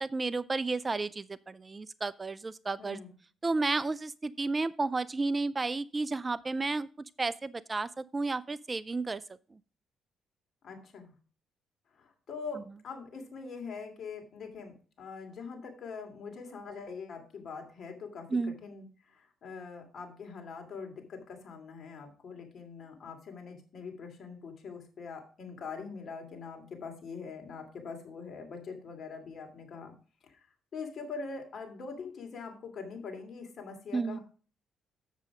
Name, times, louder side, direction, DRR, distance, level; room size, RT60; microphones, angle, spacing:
voice 1, 0.0-3.0 3.4-6.9 7.2-9.2 18.3-18.5 33.9-34.2, right 3 dB, 25° right, 18 dB, 0.4 m, -32 dB
voice 2, 2.8-3.1 10.6-11.1 11.9-29.9 30.2-30.5 30.7-34.2, left 5 dB, 55° left, 3 dB, 2.7 m, -43 dB
7.5 x 7.2 x 4.9 m, 0.38 s
cardioid pair, 90°, 0 cm